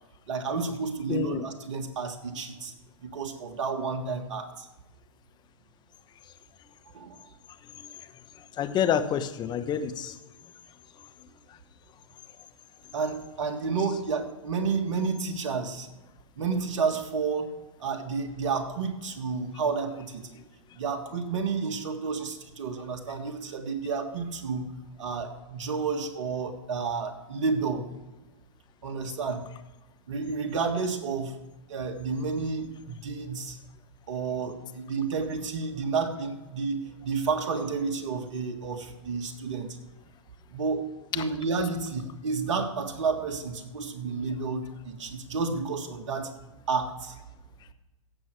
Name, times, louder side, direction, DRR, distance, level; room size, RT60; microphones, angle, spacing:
voice 1, 0.3-2.7 3.0-4.7 6.9-7.2 12.9-15.9 16.4-17.5 17.8-20.4 20.7-24.7 25.0-27.9 28.8-29.4 30.1-31.3 31.7-33.6 34.1-39.7 40.5-46.3 46.7-47.1, right 5 dB, 65° right, 6 dB, 1.7 m, -31 dB
voice 2, 1.1-1.4 7.8-7.9 8.6-10.2, left 9 dB, 25° left, 10 dB, 0.9 m, -28 dB
16.0 x 7.5 x 4.6 m, 1.1 s
hypercardioid pair, 110°, 17 cm